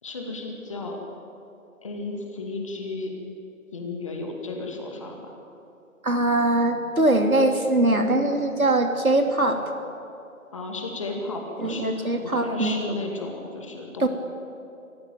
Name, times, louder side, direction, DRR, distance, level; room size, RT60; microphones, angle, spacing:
voice 1, 0.0-1.0 1.8-3.1 3.7-5.3 10.5-14.1, left 3 dB, 20° left, 1 dB, 2.3 m, -33 dB
voice 2, 6.0-9.6 11.6-12.8 14.0-14.1, right 2 dB, 75° right, 4 dB, 3.1 m, -22 dB
26.0 x 15.0 x 9.2 m, 2.8 s
figure-of-eight pair, 155°, 42 cm